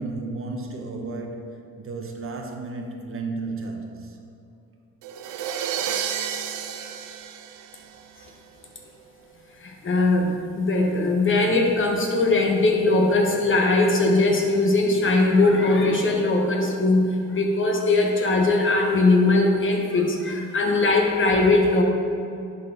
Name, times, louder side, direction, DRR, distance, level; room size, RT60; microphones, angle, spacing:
voice 1, 0.0-4.2, right 3 dB, 45° right, 3 dB, 0.9 m, -33 dB
sound 1, 5.0-8.3, right 8 dB, 90° right, 0.5 m, -31 dB
voice 2, 9.6-21.8, left 2 dB, 40° left, 1 dB, 1.3 m, -20 dB
10.5 x 4.4 x 3.9 m, 2.7 s
cardioid pair, 90°, 30 cm